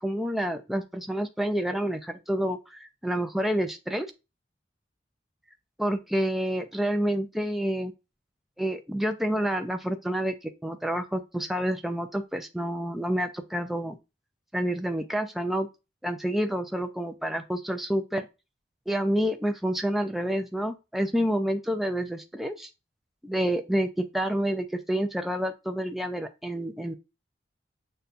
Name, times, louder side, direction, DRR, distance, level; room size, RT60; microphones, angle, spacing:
voice 1, 0.0-4.1 5.8-7.9 8.6-14.0 14.5-15.7 16.0-18.3 18.9-22.7 23.2-26.9, equal, ahead, 6 dB, 0.3 m, -28 dB
6.7 x 2.3 x 2.5 m, 0.27 s
head